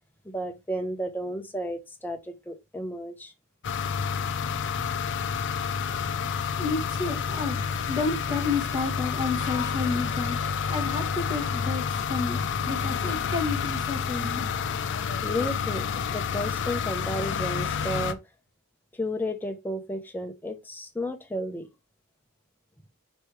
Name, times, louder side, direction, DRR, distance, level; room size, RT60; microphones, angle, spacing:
voice 1, 0.2-2.2 2.5-3.3 15.2-18.2 18.9-21.7, equal, 10° left, 0.6 m, -32 dB
sound 1, 3.6-18.1, left 6 dB, 55° left, 0.4 m, -29 dB
voice 2, 6.6-7.6 7.9-14.5, left 4 dB, 20° right, 1.2 m, -31 dB
4.5 x 3.2 x 3.1 m
head